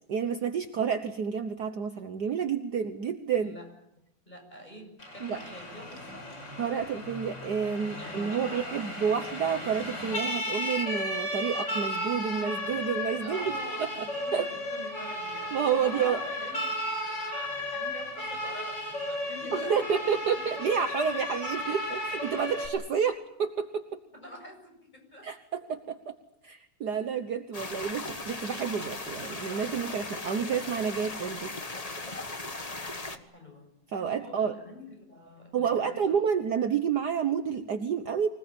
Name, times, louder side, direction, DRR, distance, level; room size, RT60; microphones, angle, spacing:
voice 1, 0.1-3.5 5.2-5.4 6.6-13.5 13.8-13.9 14.3-14.5 15.5-16.2 19.5-24.0 25.2-26.1 26.4-31.5 33.9-34.5 35.5-38.3, right 7 dB, 65° right, 8 dB, 1.0 m, -29 dB
voice 2, 3.4-3.7 4.3-6.3 8.0-8.9 13.2-20.3 24.1-25.3 33.0-33.7 34.0-36.0, equal, 15° left, 3 dB, 7.5 m, -46 dB
Siren, 5.0-22.7, left 1 dB, 35° left, 6.1 m, -34 dB
sound 1, 27.5-33.2, left 2 dB, 80° left, 0.3 m, -38 dB
25.5 x 19.0 x 8.9 m, 0.79 s
omnidirectional pair, 3.4 m